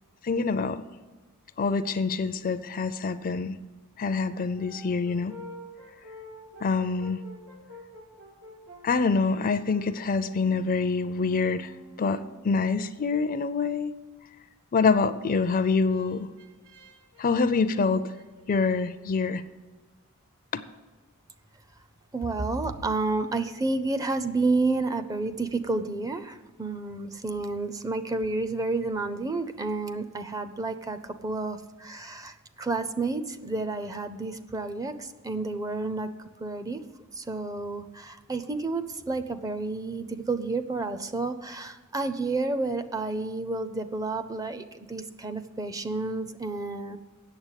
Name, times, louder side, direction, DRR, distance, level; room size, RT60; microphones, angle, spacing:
voice 1, 0.2-0.8 1.6-3.6 4.0-5.3 6.6-7.2 8.8-11.7 12.0-12.2 12.4-13.9 14.7-16.3 17.2-18.0 18.5-19.4 20.5-20.6, left 4 dB, 40° left, 12 dB, 0.4 m, -25 dB
Brass instrument, 4.3-12.6 15.1-18.8, equal, 90° right, 1.9 m, -49 dB
voice 2, 22.1-36.1 36.4-36.8 37.2-47.0, right 3 dB, 15° right, 11 dB, 0.5 m, -30 dB
8.9 x 6.9 x 8.1 m, 1.2 s
head